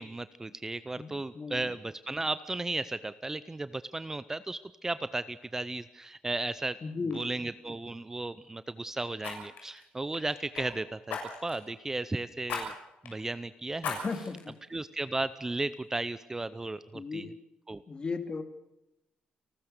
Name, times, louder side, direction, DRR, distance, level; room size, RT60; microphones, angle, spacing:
voice 1, 0.0-6.8 7.1-12.7 13.0-14.0 14.7-17.3 17.7-17.8, right 2 dB, 15° right, 14 dB, 0.7 m, -35 dB
voice 2, 1.0-1.7 6.8-7.2 14.0-14.6 16.9-17.4 17.9-18.4, left 4 dB, 35° left, 9 dB, 2.4 m, -36 dB
Fire, 6.5-6.7 7.1-7.3 9.2-10.7 11.1-11.6 12.5-12.6 13.0-13.1 13.8-14.4 14.9-15.0, left 5 dB, 80° left, 6.9 m, -38 dB
30.0 x 13.0 x 6.7 m, 0.89 s
cardioid pair, 110°, 3 cm